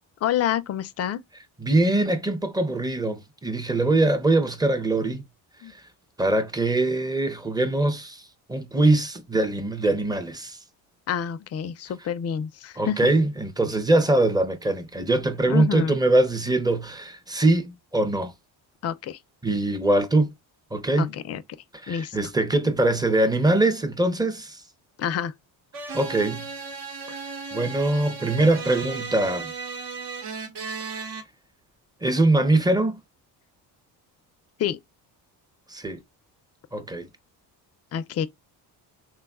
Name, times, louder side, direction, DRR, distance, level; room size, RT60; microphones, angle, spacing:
voice 1, 0.2-1.2 5.6-5.7 11.1-13.0 15.5-16.0 18.8-19.2 21.0-21.4 21.9-22.2 25.0-25.3 34.6-34.8 37.9-38.3, left 9 dB, 35° left, 0.4 m, -28 dB
voice 2, 1.6-5.2 5.7-5.8 6.2-8.2 8.5-10.6 12.8-18.3 19.4-20.3 20.7-21.1 21.8-24.6 25.9-26.5 27.5-29.5 32.0-33.0 35.7-36.0 36.7-37.1, right 2 dB, 10° right, 0.6 m, -22 dB
sound 1, 25.7-31.2, right 4 dB, 65° right, 1.0 m, -35 dB
3.5 x 2.3 x 2.3 m
cardioid pair, 85°, 44 cm